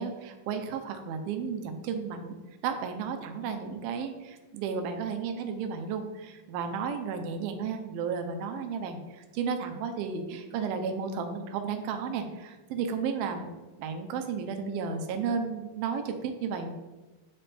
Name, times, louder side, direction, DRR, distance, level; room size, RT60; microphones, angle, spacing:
voice 1, 0.0-2.4 2.6-13.5 13.8-16.7, right 6 dB, 80° right, 5 dB, 2.5 m, -33 dB
9.8 x 3.5 x 4.2 m, 1.2 s
omnidirectional pair, 4.3 m